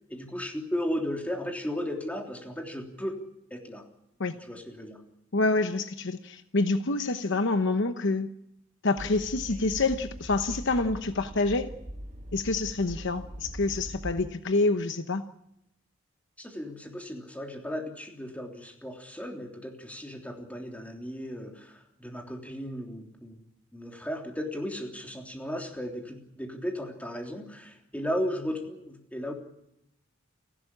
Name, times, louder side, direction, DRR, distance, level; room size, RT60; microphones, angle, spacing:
voice 1, 0.1-3.2 3.5-3.8 4.5-5.0 16.4-23.4 23.7-29.3, equal, 5° left, 2 dB, 3.4 m, -35 dB
voice 2, 5.3-8.3 8.8-11.7 12.3-15.2, left 3 dB, 60° left, 9 dB, 1.0 m, -27 dB
Train, 9.0-14.3, equal, 35° right, 1.5 m, -41 dB
30.0 x 12.0 x 10.0 m, 0.82 s
head